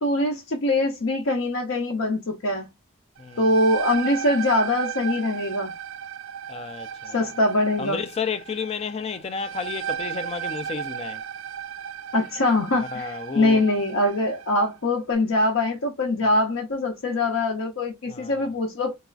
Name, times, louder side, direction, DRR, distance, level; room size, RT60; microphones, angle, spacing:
voice 1, 0.0-2.7 3.4-5.7 7.1-8.0 12.1-19.0, left 2 dB, 65° left, 0.6 m, -23 dB
sound 1, 3.2-14.6, right 9 dB, 65° right, 0.3 m, -35 dB
voice 2, 6.5-7.2 7.8-11.2 12.8-13.6 18.1-18.5, left 5 dB, 30° left, 0.3 m, -32 dB
4.0 x 2.3 x 2.3 m
head